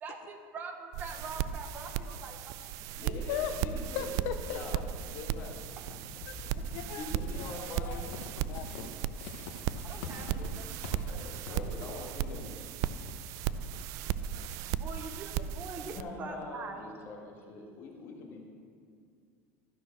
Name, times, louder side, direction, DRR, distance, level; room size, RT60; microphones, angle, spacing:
voice 1, 0.0-2.6 3.0-3.5 5.8-5.9 9.8-10.7 11.1-11.2 11.4-11.6 14.7-16.8, right 4 dB, 30° right, 5 dB, 0.8 m, -44 dB
sound 1, 0.9-16.0, right 10 dB, 55° right, 0.4 m, -36 dB
voice 2, 3.0-4.1 4.5-5.6 7.0-8.0 11.0-12.5 15.8-18.4, left 3 dB, 40° left, 0 dB, 1.8 m, -44 dB
Walk footsteps / Squeak, 4.0-13.5, left 4 dB, 90° left, 1.1 m, -47 dB
voice 3, 4.0-4.6 6.3-8.1 8.5-8.7, left 9 dB, 65° left, 7 dB, 0.5 m, -38 dB
12.5 x 6.2 x 6.1 m, 2.2 s
cardioid pair, 155°, 6 cm